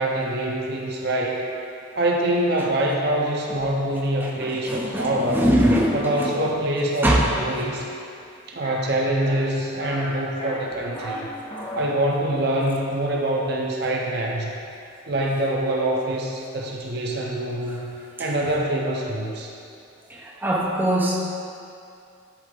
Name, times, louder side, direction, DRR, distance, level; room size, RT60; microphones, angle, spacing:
voice 1, 0.0-1.4 2.0-5.5 5.9-7.9 8.5-11.3 11.7-14.5 15.1-19.5, right 1 dB, 55° right, -1 dB, 0.7 m, -25 dB
voice 2, 4.2-6.3 7.0-7.3 20.1-21.2, right 1 dB, 10° right, -5 dB, 0.7 m, -22 dB
sound 1, 8.6-8.8 9.2-9.5 9.8-10.1 10.4-11.2 11.5-11.9, left 2 dB, 25° left, 1.0 m, -34 dB
11.0 x 3.9 x 3.7 m, 2.5 s
head